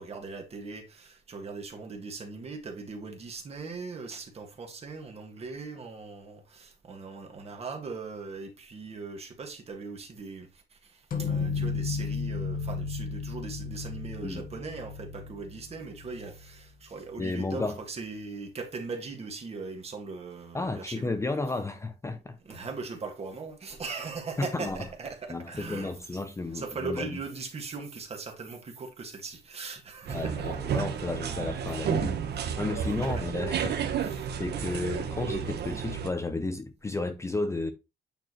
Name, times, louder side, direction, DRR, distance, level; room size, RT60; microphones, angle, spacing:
voice 1, 0.0-21.2 22.4-25.9 26.5-30.3 33.0-33.1 34.0-34.3, right 4 dB, 35° right, 1.7 m, -39 dB
sound 1, 11.1-16.6, left 5 dB, 55° left, 1.3 m, -34 dB
voice 2, 17.2-17.8 20.5-22.4 24.4-24.8 25.3-27.2 30.1-32.2 32.6-33.9 34.4-37.7, left 3 dB, 15° left, 0.6 m, -32 dB
sound 2, 30.1-36.1, right 7 dB, 75° right, 1.0 m, -31 dB
8.9 x 4.6 x 3.0 m
wide cardioid pair, 175°, 17 cm